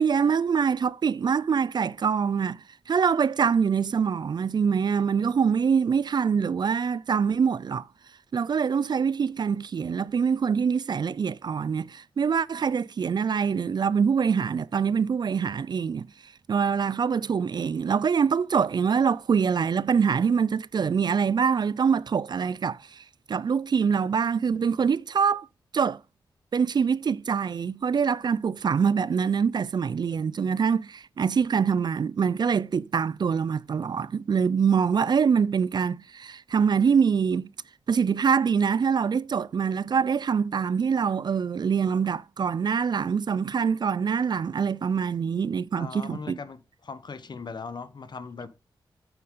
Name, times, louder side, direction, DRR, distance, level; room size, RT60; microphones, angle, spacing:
voice 1, 0.0-7.9 8.3-16.1 16.5-25.5 25.7-26.0 26.5-37.5 37.9-46.4, right 6 dB, 55° right, 0.4 m, -24 dB
voice 2, 45.7-48.5, left 5 dB, 60° left, 1.1 m, -39 dB
7.8 x 7.5 x 3.7 m
cardioid pair, 60°, 9 cm